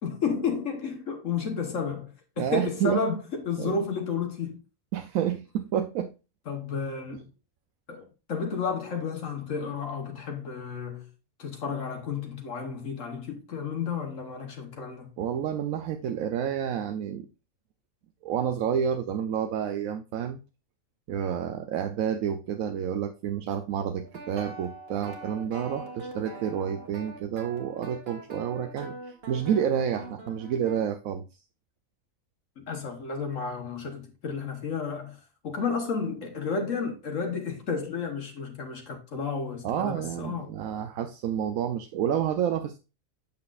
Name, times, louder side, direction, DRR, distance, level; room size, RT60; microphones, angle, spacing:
voice 1, 0.0-4.6 6.5-7.2 7.9-11.1 11.4-15.1 32.6-35.2 35.4-40.5, left 5 dB, 65° left, 1.5 m, -32 dB
voice 2, 2.4-3.0 3.6-3.8 4.9-6.1 15.2-17.3 18.2-20.4 21.1-31.2 39.6-42.8, right 9 dB, 85° right, 1.1 m, -29 dB
sound 1, 23.9-30.9, right 2 dB, 50° right, 1.6 m, -42 dB
8.6 x 6.0 x 2.4 m
omnidirectional pair, 1.4 m